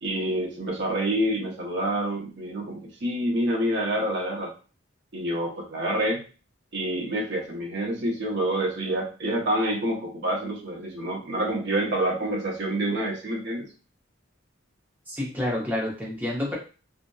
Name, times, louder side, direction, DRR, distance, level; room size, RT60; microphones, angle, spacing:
voice 1, 0.0-4.5 5.1-6.2 6.7-13.6, right 1 dB, 60° right, -1 dB, 0.7 m, -27 dB
voice 2, 15.1-16.6, left 1 dB, 10° right, -3 dB, 0.7 m, -29 dB
2.6 x 2.1 x 2.2 m, 0.36 s
head